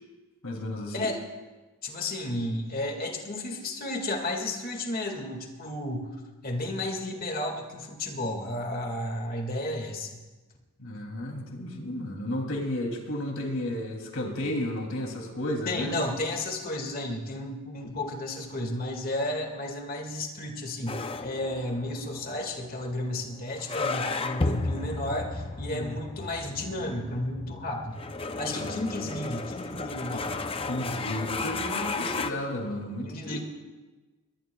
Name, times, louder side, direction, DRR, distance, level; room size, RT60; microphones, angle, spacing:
voice 1, 0.4-1.1 10.8-16.0 25.7-26.0 28.5-29.0 30.7-33.4, left 1 dB, 80° left, 1 dB, 2.9 m, -33 dB
voice 2, 1.8-6.2 6.4-10.2 15.7-28.0 28.4-30.4 33.0-33.4, left 1 dB, 40° left, 3 dB, 2.0 m, -33 dB
sound 1, 20.9-32.3, left 3 dB, 25° left, 0.5 m, -34 dB
22.5 x 18.5 x 2.3 m, 1.2 s
head